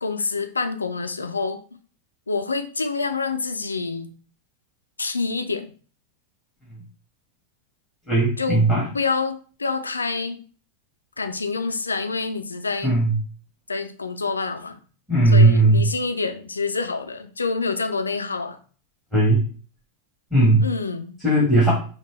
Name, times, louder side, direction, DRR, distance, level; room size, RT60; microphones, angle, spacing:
voice 1, 0.0-1.6 2.3-4.1 5.0-5.7 8.4-8.6 8.9-10.4 11.2-12.9 13.7-14.8 15.3-18.6 20.6-21.1, left 4 dB, 75° left, 8 dB, 0.4 m, -27 dB
voice 2, 8.1-8.9 12.8-13.1 15.1-15.8 19.1-19.4 20.3-20.6 21.2-21.7, right 2 dB, 5° right, -7 dB, 2.1 m, -17 dB
5.2 x 2.1 x 3.3 m, 0.40 s
figure-of-eight pair, 90°, 0 cm